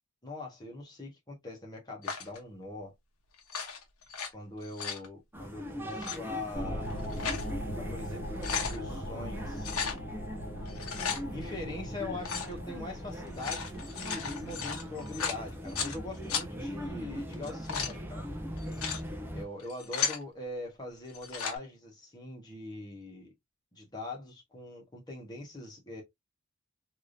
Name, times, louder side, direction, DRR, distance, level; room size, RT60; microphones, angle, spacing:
voice 1, 0.2-2.9 4.3-6.9 7.8-9.7 11.3-18.2 19.3-23.3 23.7-26.0, left 2 dB, 20° left, 1.3 m, -42 dB
sound 1, 2.0-2.4 3.4-4.3 4.6-5.1 5.9-6.2 6.9-7.5 7.9-8.0 8.2-8.8 9.6-10.0 10.7-11.2 12.2-12.5 13.2-16.0 16.3-16.4 17.3-17.9 18.6-19.0 19.6-20.2 21.1-21.6, left 6 dB, 85° left, 1.0 m, -35 dB
sound 2, 5.3-19.4, equal, 10° right, 0.5 m, -41 dB
sound 3, 6.5-15.7, equal, 40° left, 1.1 m, -40 dB
3.4 x 2.8 x 2.5 m
head